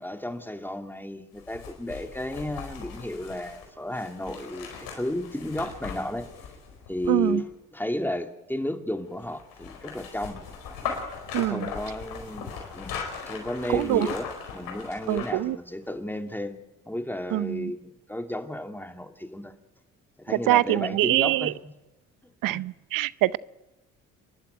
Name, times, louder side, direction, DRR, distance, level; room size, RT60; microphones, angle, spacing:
voice 1, 0.0-6.3 6.9-7.5 7.7-10.4 11.4-12.5 12.7-12.9 13.3-16.6 16.9-19.5 20.2-21.5 22.5-22.6, left 1 dB, 5° left, 7 dB, 2.5 m, -33 dB
sound 1, 1.3-7.5 9.2-15.5 15.9-16.0, left 6 dB, 80° left, 4.7 m, -39 dB
voice 2, 7.1-7.4 11.3-11.7 13.7-14.1 15.1-15.6 17.3-17.7 20.3-21.5 22.4-23.4, right 15 dB, 70° right, 19 dB, 0.7 m, -24 dB
28.5 x 11.5 x 9.1 m, 1.0 s
supercardioid pair, 55°, 34 cm